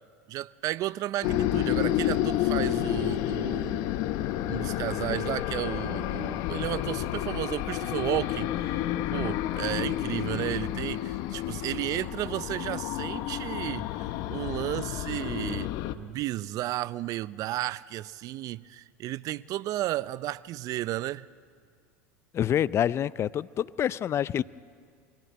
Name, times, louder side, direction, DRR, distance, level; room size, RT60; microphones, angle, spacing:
voice 1, 0.3-3.9 4.5-8.8 9.1-15.7 15.9-21.3, right 15 dB, 50° right, 0.6 m, -33 dB
sound 1, 1.2-15.9, left 13 dB, 60° left, 1.0 m, -30 dB
voice 2, 22.3-24.4, left 10 dB, 35° left, 0.5 m, -27 dB
22.5 x 14.5 x 9.4 m
hypercardioid pair, 95°, 8 cm